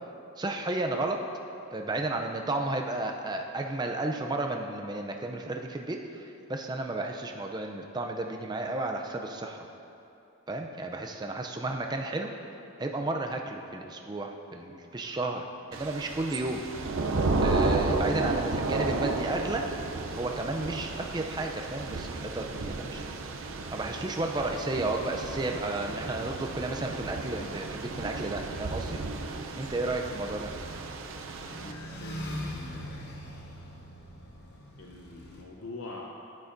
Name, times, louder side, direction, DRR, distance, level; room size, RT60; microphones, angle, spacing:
voice 1, 0.4-1.2 1.7-9.7 10.5-12.3 12.8-15.4 15.7-16.6 17.4-19.7 20.2-23.0 23.7-29.0 29.6-30.5, right 2 dB, 20° right, 3 dB, 0.4 m, -33 dB
Thunder / Rain, 15.7-31.7, right 3 dB, 65° right, 0.5 m, -33 dB
sound 1, 30.0-35.4, equal, 50° left, 1.0 m, -42 dB
voice 2, 31.6-33.1 34.8-36.1, left 2 dB, 75° left, -1 dB, 0.7 m, -44 dB
9.7 x 9.5 x 2.6 m, 2.8 s
head